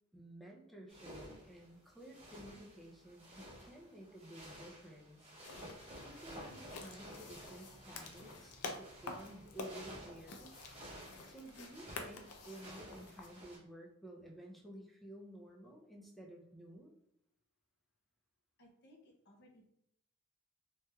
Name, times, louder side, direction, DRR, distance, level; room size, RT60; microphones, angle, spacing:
voice 1, 0.1-5.3 6.0-10.7 11.3-16.9, right 1 dB, ahead, -1 dB, 0.4 m, -53 dB
sound 1, 0.9-13.6, equal, 25° right, 0.9 m, -53 dB
sound 2, 5.4-13.3, left 3 dB, 80° left, 0.4 m, -49 dB
sound 3, 5.9-11.1, right 1 dB, 75° right, 0.9 m, -66 dB
voice 2, 18.6-19.6, left 1 dB, 50° left, 0 dB, 0.7 m, -63 dB
3.1 x 3.0 x 2.3 m, 0.76 s
head